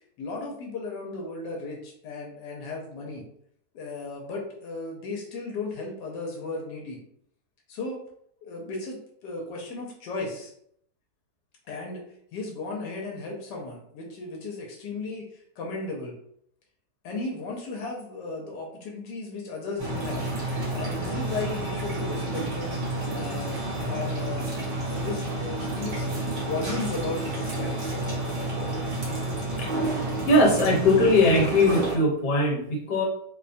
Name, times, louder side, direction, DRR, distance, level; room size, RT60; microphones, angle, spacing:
voice 1, 0.2-3.2 3.7-7.0 7.7-8.0 8.4-10.5 11.7-12.0 12.3-16.1 17.0-20.2 20.7-22.8 23.1-23.6 23.9-28.0, left 3 dB, 90° left, -1 dB, 1.2 m, -35 dB
sound 1, 19.8-32.0, right 2 dB, 50° right, 0.5 m, -30 dB
voice 2, 30.2-33.0, left 2 dB, 65° left, -1 dB, 1.3 m, -20 dB
2.9 x 2.1 x 2.5 m, 0.68 s
omnidirectional pair, 1.8 m